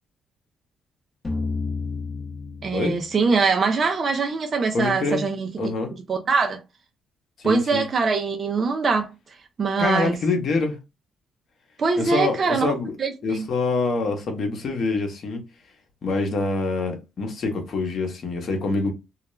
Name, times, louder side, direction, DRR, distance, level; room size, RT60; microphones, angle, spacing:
sound 1, 1.2-4.2, left 4 dB, 25° left, 0.8 m, -31 dB
voice 1, 2.6-5.5 6.1-6.6 7.4-9.1 9.6-10.2 11.8-12.7 13.0-13.5, right 4 dB, 45° right, 0.4 m, -23 dB
voice 2, 4.7-5.3 5.6-5.9 7.4-7.8 9.8-10.8 12.0-12.9 13.2-15.4 16.0-18.9, left 3 dB, 60° left, 0.9 m, -25 dB
2.3 x 2.2 x 3.0 m
cardioid pair, 90°, 0 cm